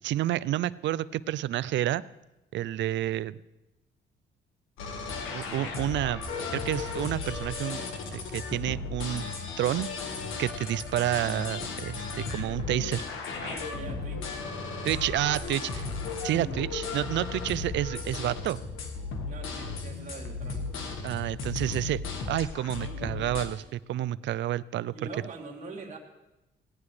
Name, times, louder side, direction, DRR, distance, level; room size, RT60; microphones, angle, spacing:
voice 1, 0.0-2.0 2.5-3.4 5.3-6.2 6.5-9.3 9.6-9.9 10.4-13.1 14.8-15.8 16.2-18.6 21.0-22.0 22.3-25.1, right 13 dB, 65° right, 19 dB, 0.4 m, -29 dB
sound 1, 4.8-23.5, left 4 dB, 85° left, 1.5 m, -35 dB
voice 2, 13.4-14.4 19.3-20.7 24.9-26.0, right 3 dB, 35° right, -1 dB, 1.9 m, -43 dB
17.0 x 9.6 x 3.2 m, 0.97 s
cardioid pair, 90°, 20 cm